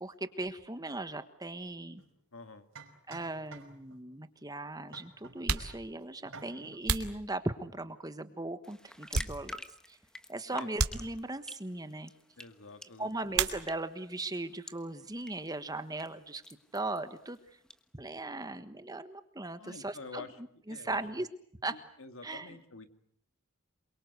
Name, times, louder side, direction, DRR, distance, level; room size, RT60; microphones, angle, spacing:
voice 1, 0.0-2.0 3.1-9.6 9.9-10.0 10.3-12.1 13.0-16.4 16.7-17.4 17.9-20.3 20.7-21.3 21.6-21.8 22.2-22.6, right 2 dB, 15° right, 11 dB, 1.3 m, -38 dB
sound 1, 2.0-2.1 2.8-4.1 4.9-5.8 6.2-6.8, right 4 dB, 60° right, 5.1 m, -51 dB
voice 2, 2.3-2.7 10.5-10.7 12.4-13.1 19.6-20.4 20.7-21.0 21.7-22.9, left 3 dB, 60° left, 9 dB, 2.2 m, -48 dB
sound 2, 3.6-3.7 4.6-4.7 5.3-7.9 8.5-9.8 10.1-10.3 10.7-11.6 13.3-14.1 14.4-15.1 15.3-17.5, right 5 dB, 80° right, 2.6 m, -36 dB
sound 3, 8.6-17.8, left 1 dB, 5° left, 1.3 m, -50 dB
28.0 x 23.5 x 8.2 m, 0.65 s
head